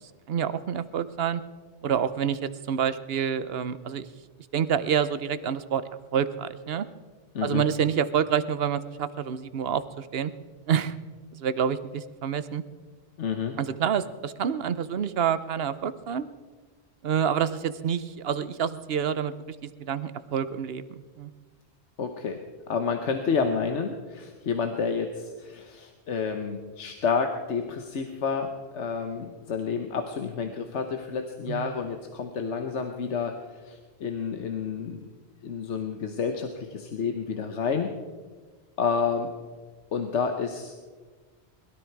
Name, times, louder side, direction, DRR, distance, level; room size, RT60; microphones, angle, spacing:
voice 1, 0.3-1.4 1.8-4.1 4.5-5.8 6.1-6.9 7.4-10.3 10.7-11.0 11.3-12.6 13.6-16.3 17.0-19.6 19.9-21.3 31.5-31.7, right 8 dB, 65° right, 14 dB, 1.0 m, -27 dB
voice 2, 13.2-13.6 22.0-22.4 22.7-28.5 28.7-35.0 35.4-37.9 38.8-39.3 39.9-40.8, left 5 dB, 85° left, 5 dB, 1.3 m, -29 dB
21.5 x 13.0 x 4.7 m, 1.4 s
omnidirectional pair, 1.2 m